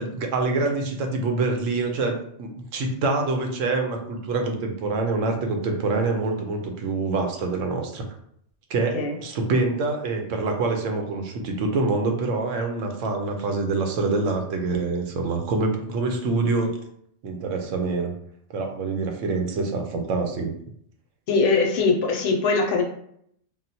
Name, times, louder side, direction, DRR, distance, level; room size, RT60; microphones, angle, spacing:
voice 1, 0.0-8.0 8.7-16.7 17.2-18.1 18.5-20.5, right 3 dB, 90° right, 3 dB, 1.0 m, -25 dB
voice 2, 21.3-22.8, left 4 dB, 75° left, 1 dB, 0.9 m, -21 dB
3.7 x 2.1 x 2.7 m, 0.68 s
omnidirectional pair, 1.3 m